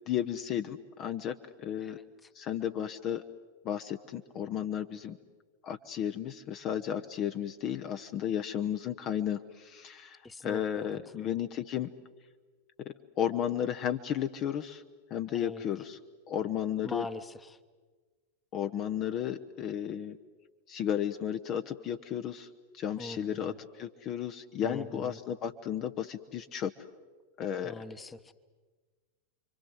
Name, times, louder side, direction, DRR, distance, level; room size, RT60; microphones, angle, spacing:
voice 1, 0.1-2.0 2.3-3.2 3.6-5.2 5.6-11.9 12.8-14.8 15.1-16.0 16.3-17.1 18.5-20.2 20.7-22.5 22.7-26.7 27.4-27.8, left 9 dB, 35° left, 9 dB, 0.9 m, -33 dB
voice 2, 10.2-10.8 11.1-11.3 15.3-15.6 16.8-17.6 23.0-23.5 24.6-25.2 27.6-28.3, left 2 dB, 10° left, 12 dB, 1.2 m, -42 dB
29.5 x 24.5 x 7.9 m, 1.4 s
figure-of-eight pair, 90°, 0 cm